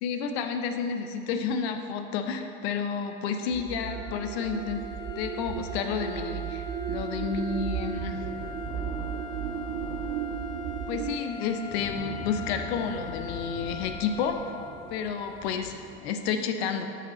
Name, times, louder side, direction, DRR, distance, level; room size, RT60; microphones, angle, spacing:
voice 1, 0.0-4.8 5.2-6.6 6.9-8.2 10.9-14.4 14.9-16.9, left 6 dB, 75° left, 7 dB, 0.6 m, -30 dB
sound 1, 3.5-11.2, right 8 dB, 35° right, 0.4 m, -34 dB
sound 2, 3.8-15.3, left 3 dB, 15° left, 0.7 m, -42 dB
sound 3, 6.9-16.0, left 2 dB, 55° left, 1.5 m, -43 dB
5.5 x 5.2 x 4.1 m, 2.5 s
hypercardioid pair, 90°, 32 cm